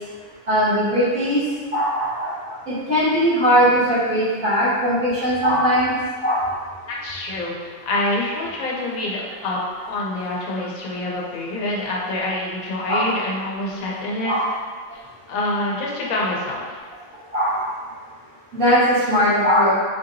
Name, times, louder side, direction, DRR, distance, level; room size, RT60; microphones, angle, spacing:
voice 1, 0.5-1.4 1.7-2.4 2.9-5.9 6.2-6.5 12.9-13.1 14.2-14.5 17.3-17.6 18.5-18.8 19.1-19.7, equal, 75° right, -11 dB, 1.8 m, -19 dB
voice 2, 6.9-9.6 9.9-14.3 14.9-15.0 15.3-16.8, left 2 dB, 80° left, -3 dB, 1.2 m, -26 dB
4.2 x 2.8 x 2.5 m, 1.5 s
omnidirectional pair, 1.4 m